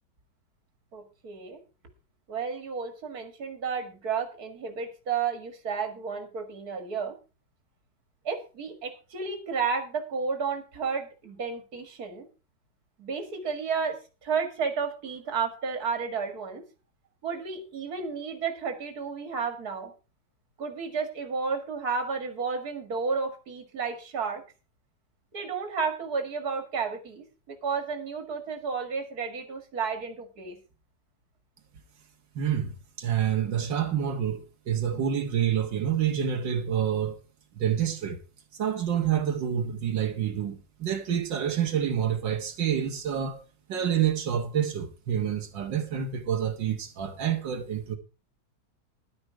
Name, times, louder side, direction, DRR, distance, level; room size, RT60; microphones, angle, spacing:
voice 1, 0.9-1.6 2.3-7.1 8.2-12.3 13.0-14.0 14.2-16.6 17.2-19.9 20.6-24.4 25.3-30.6, right 5 dB, 55° right, 2.5 m, -32 dB
voice 2, 32.4-37.2 37.6-38.2 38.5-48.0, right 9 dB, 90° right, 2.0 m, -28 dB
11.5 x 9.9 x 4.8 m
omnidirectional pair, 1.9 m